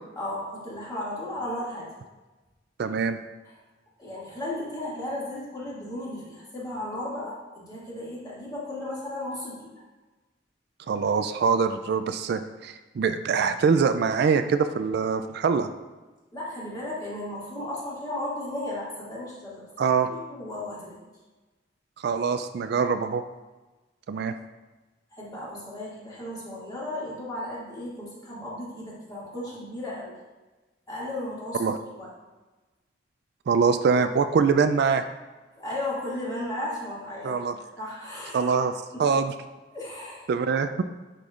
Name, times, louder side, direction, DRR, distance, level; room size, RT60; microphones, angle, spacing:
voice 1, 0.2-1.9 4.0-9.7 16.3-21.0 25.2-30.1 30.9-31.7 32.0-32.1 35.6-37.4 37.8-38.5 38.9-39.0 39.7-40.3, left 1 dB, 20° left, -7 dB, 2.2 m, -35 dB
voice 2, 2.8-3.2 10.9-15.7 19.8-20.1 22.0-23.2 24.1-24.3 31.6-31.8 33.5-35.0 37.2-37.6 38.3-39.3 40.3-40.8, right 5 dB, 60° right, 9 dB, 0.3 m, -24 dB
9.9 x 5.2 x 2.4 m, 1.2 s
head